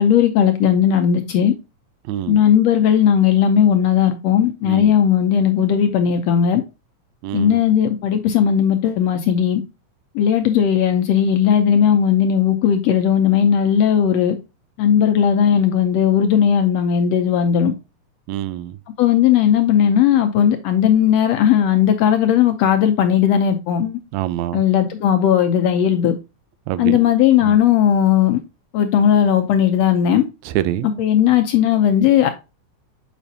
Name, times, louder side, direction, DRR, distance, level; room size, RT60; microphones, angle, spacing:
voice 1, 0.0-1.5 2.3-6.6 7.3-9.6 10.1-14.4 14.8-17.7 19.0-24.0 24.5-26.1 26.8-28.4 28.7-30.2 30.8-32.3, left 9 dB, 75° left, 1.6 m, -16 dB
voice 2, 2.1-2.4 4.7-4.9 7.2-7.6 18.3-18.8 24.1-24.6 26.7-27.0 27.4-27.6 30.5-31.0, right 13 dB, 80° right, 1.8 m, -25 dB
7.2 x 5.1 x 2.7 m
omnidirectional pair, 3.4 m